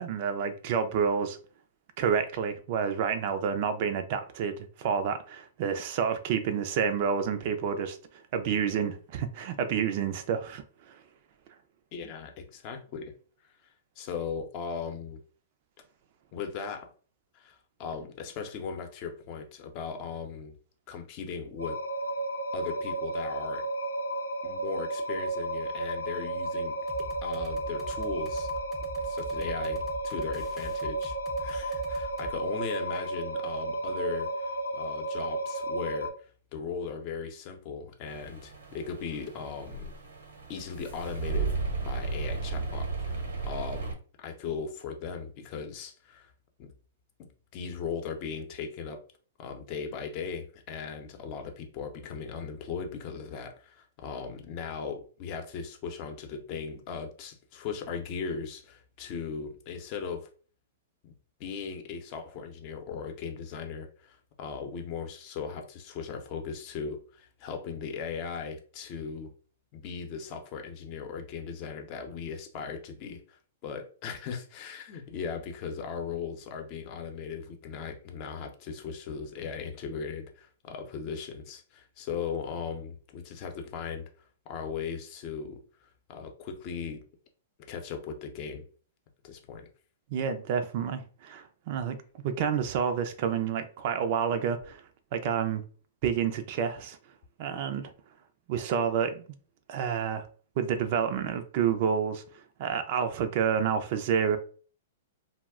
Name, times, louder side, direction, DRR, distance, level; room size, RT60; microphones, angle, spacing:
voice 1, 0.0-1.4 2.0-8.0 8.3-11.0 90.1-92.0 92.2-94.8 95.1-95.6 96.0-97.0 97.4-97.9 98.5-99.2 99.7-100.3 100.6-104.4, right 7 dB, 50° right, 0.4 m, -29 dB
voice 2, 11.9-13.1 13.6-13.7 14.0-15.2 16.3-16.9 17.3-20.6 20.9-21.8 22.5-23.7 24.4-26.8 27.2-28.5 29.0-39.9 40.5-41.5 41.8-46.3 46.6-46.7 47.2-49.0 49.4-60.3 61.0-69.3 69.7-73.4 73.6-84.1 84.5-87.0 87.7-88.6 89.2-89.7, left 6 dB, 45° left, 0.6 m, -38 dB
sound 1, 21.6-36.1, right 2 dB, 90° left, 0.5 m, -33 dB
sound 2, 26.9-32.4, right 1 dB, 5° left, 0.6 m, -44 dB
sound 3, 38.1-43.9, right 4 dB, 75° right, 0.8 m, -34 dB
2.3 x 2.0 x 3.5 m
hypercardioid pair, 120°, 0 cm